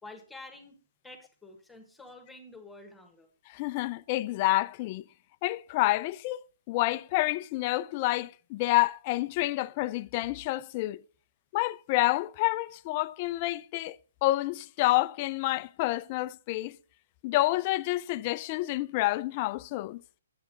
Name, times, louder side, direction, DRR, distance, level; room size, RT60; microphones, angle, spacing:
voice 1, 0.0-0.8 1.0-3.3, left 2 dB, 5° left, 1.4 m, -48 dB
voice 2, 3.5-5.0 5.4-6.4 6.7-11.0 11.5-16.8 17.2-20.0, left 18 dB, 35° left, 0.3 m, -28 dB
10.0 x 8.2 x 3.9 m
hypercardioid pair, 140°, 0 cm